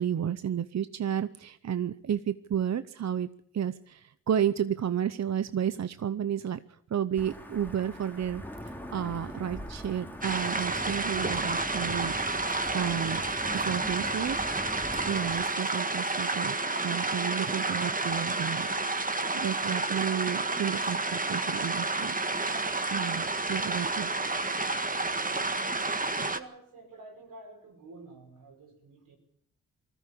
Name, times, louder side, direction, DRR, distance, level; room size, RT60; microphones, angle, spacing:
voice 1, 0.0-3.3 3.5-12.2 12.7-13.2 13.5-14.4 14.9-16.6 16.8-22.2 22.9-24.1, right 9 dB, 55° right, 14 dB, 0.8 m, -32 dB
Wind / Thunder / Rain, 7.2-15.4, equal, 5° left, 2.6 m, -41 dB
sound 1, 10.2-26.4, right 3 dB, 25° right, 1.8 m, -30 dB
voice 2, 26.3-29.2, right 2 dB, 85° right, 3 dB, 5.3 m, -49 dB
20.0 x 14.0 x 10.0 m, 0.72 s
cardioid pair, 55°, 32 cm